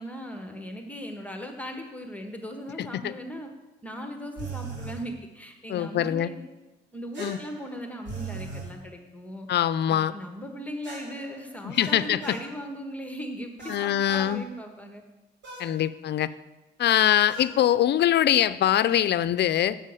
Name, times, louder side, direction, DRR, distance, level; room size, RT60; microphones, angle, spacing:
voice 1, 0.0-3.5 3.8-6.4 6.9-9.5 9.9-15.0, equal, 5° left, 4 dB, 1.3 m, -38 dB
voice 2, 2.8-3.1 5.7-6.3 7.2-7.4 9.5-10.1 11.6-12.4 13.7-14.4 15.6-16.3 16.8-19.8, left 11 dB, 60° left, 15 dB, 0.5 m, -23 dB
sound 1, 4.4-5.0 7.1-8.7 10.8-12.5 13.6-14.3 15.4-15.7 17.3-17.6, right 4 dB, 65° right, 3.6 m, -39 dB
7.4 x 7.2 x 8.3 m, 1.1 s
cardioid pair, 90°, 20 cm